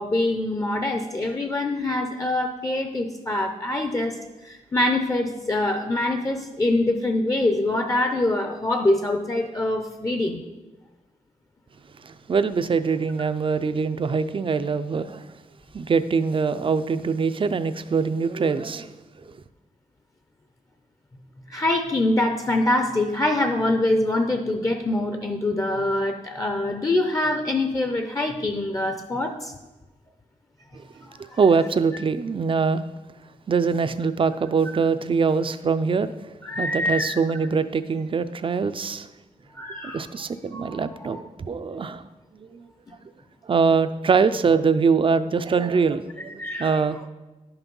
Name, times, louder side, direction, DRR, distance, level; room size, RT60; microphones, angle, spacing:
voice 1, 0.0-4.2 4.4-10.4 21.5-29.5 31.1-31.4 36.4-37.2 39.6-40.1 40.5-40.8 41.1-41.2 41.8-42.0 46.4-46.8, left 2 dB, 25° left, 0.6 m, -24 dB
voice 2, 12.0-15.3 15.7-18.9 19.3-19.4 31.4-32.8 33.5-36.1 36.6-39.1 39.9-42.0 42.3-42.7 43.4-47.1, right 5 dB, 40° right, 0.4 m, -23 dB
11.0 x 5.9 x 5.4 m
wide cardioid pair, 170°, 14 cm